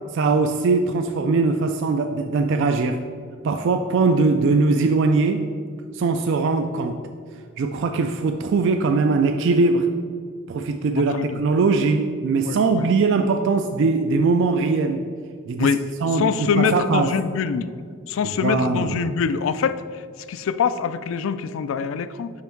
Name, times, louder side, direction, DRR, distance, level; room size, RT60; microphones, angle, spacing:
voice 1, 0.2-3.0 3.4-5.5 5.9-7.0 7.6-9.9 10.5-15.1 15.5-15.7 16.0-17.1 18.2-19.1, right 4 dB, 55° right, 6 dB, 0.3 m, -21 dB
voice 2, 11.0-11.4 12.5-12.8 15.6-15.8 16.1-17.7 18.1-19.8 20.3-22.3, left 6 dB, 65° left, 13 dB, 0.3 m, -24 dB
5.7 x 5.1 x 4.5 m, 2.1 s
head